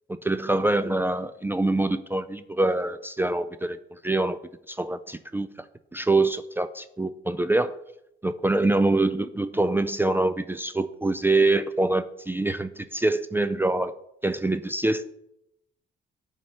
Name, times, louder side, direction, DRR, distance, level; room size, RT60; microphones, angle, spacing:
voice 1, 0.1-4.4 4.7-5.5 5.9-7.7 8.2-13.9 14.2-15.0, right 2 dB, 10° right, 11 dB, 0.3 m, -25 dB
9.2 x 3.2 x 5.5 m, 0.80 s
cardioid pair, 90°, 20 cm